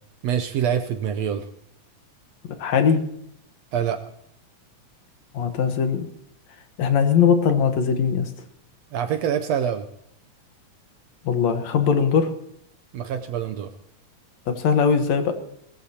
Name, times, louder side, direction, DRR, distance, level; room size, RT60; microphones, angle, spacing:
voice 1, 0.2-1.5 3.7-4.0 8.9-9.9 12.9-13.7, right 8 dB, 70° right, 8 dB, 1.7 m, -25 dB
voice 2, 2.6-3.1 5.3-6.1 6.8-8.3 11.2-12.4 14.5-15.4, left 6 dB, 65° left, 7 dB, 2.3 m, -20 dB
21.0 x 20.0 x 2.9 m, 0.73 s
omnidirectional pair, 3.5 m